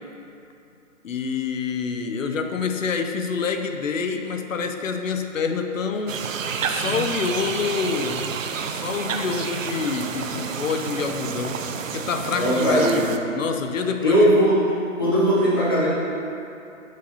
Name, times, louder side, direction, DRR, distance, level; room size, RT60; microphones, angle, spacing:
voice 1, 1.0-6.3 6.6-8.3 8.7-11.6 11.9-13.0 13.3-14.3, left 5 dB, 75° left, 6 dB, 0.7 m, -27 dB
sound 1, 6.1-13.2, right 6 dB, 80° right, 0.6 m, -29 dB
voice 2, 12.3-13.1 14.0-14.7 15.0-15.9, equal, 20° left, -8 dB, 0.8 m, -19 dB
6.8 x 6.3 x 2.8 m, 2.7 s
hypercardioid pair, 170°, 39 cm